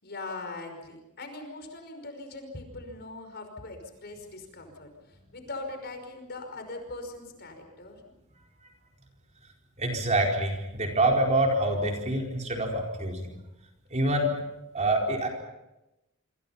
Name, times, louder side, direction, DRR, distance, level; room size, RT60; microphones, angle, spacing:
voice 1, 0.0-8.0, left 2 dB, 50° left, 5 dB, 5.4 m, -41 dB
voice 2, 9.8-13.4 13.9-14.3 14.7-15.3, right 1 dB, 30° right, 1 dB, 4.6 m, -26 dB
27.0 x 27.0 x 5.8 m, 0.95 s
head